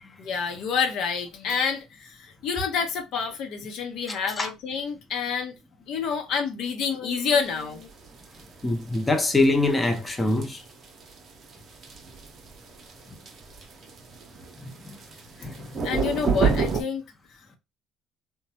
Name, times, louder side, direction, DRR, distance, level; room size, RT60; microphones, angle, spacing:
voice 1, 0.2-5.5 5.9-7.9 15.8-17.0, left 6 dB, 65° left, 0.8 m, -28 dB
voice 2, 4.1-4.5 8.6-10.6 14.8-15.0 15.4-15.7, left 2 dB, 15° left, 0.7 m, -24 dB
sound 1, 7.3-16.8, right 5 dB, 45° right, 0.7 m, -30 dB
3.0 x 2.2 x 2.8 m
hypercardioid pair, 70°, 0 cm